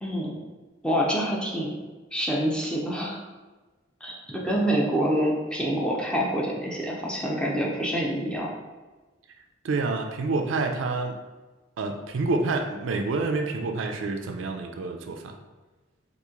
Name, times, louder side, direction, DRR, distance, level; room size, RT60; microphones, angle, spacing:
voice 1, 0.0-0.4 0.8-1.7 2.1-3.2 4.0-8.5, equal, 5° left, -3 dB, 0.5 m, -26 dB
voice 2, 9.6-11.2 11.8-15.4, right 3 dB, 75° right, 4 dB, 0.4 m, -28 dB
3.0 x 2.5 x 3.6 m, 1.2 s
head